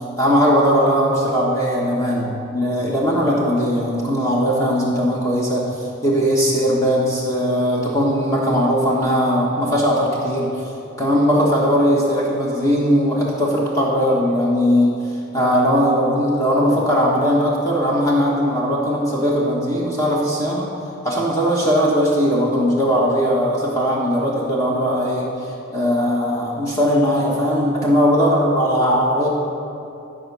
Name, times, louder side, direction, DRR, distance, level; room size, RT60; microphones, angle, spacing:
voice 1, 0.2-10.7 11.0-14.9 15.3-20.7 21.0-25.3 25.7-29.3, equal, 15° left, -5 dB, 1.2 m, -19 dB
13.5 x 5.1 x 6.9 m, 2.7 s
head